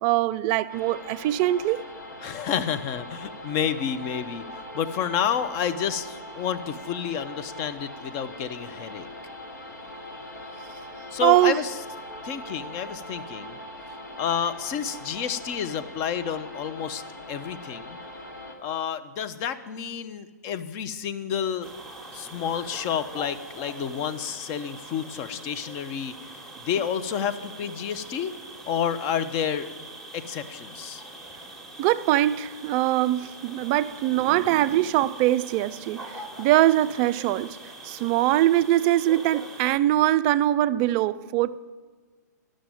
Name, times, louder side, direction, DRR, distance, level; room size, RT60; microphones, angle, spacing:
voice 1, 0.0-1.8 11.2-11.6 31.8-37.6 37.8-41.6, right 14 dB, 30° right, 0.3 m, -22 dB
sound 1, 0.7-18.6, left 1 dB, 70° left, 1.9 m, -41 dB
voice 2, 2.2-9.1 11.1-11.8 12.2-13.6 14.2-17.0 17.3-18.0 18.6-21.7 22.1-26.4 26.6-28.3 28.7-29.7 30.1-31.0, left 8 dB, 30° left, 0.6 m, -30 dB
sound 2, 21.6-39.8, right 2 dB, 5° left, 1.2 m, -43 dB
12.5 x 6.3 x 9.0 m
figure-of-eight pair, 115°, 10 cm